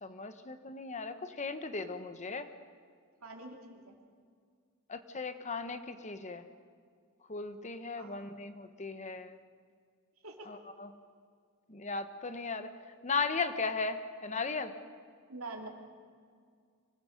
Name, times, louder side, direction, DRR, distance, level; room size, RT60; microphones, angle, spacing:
voice 1, 0.0-2.5 4.9-6.4 7.3-9.3 10.5-10.9 11.7-12.7 13.0-14.7, left 4 dB, 35° left, 9 dB, 1.0 m, -37 dB
voice 2, 3.2-3.9 8.0-8.3 10.2-10.6 15.3-15.7, right 2 dB, 75° right, 2 dB, 2.8 m, -45 dB
25.5 x 18.0 x 6.5 m, 2.1 s
head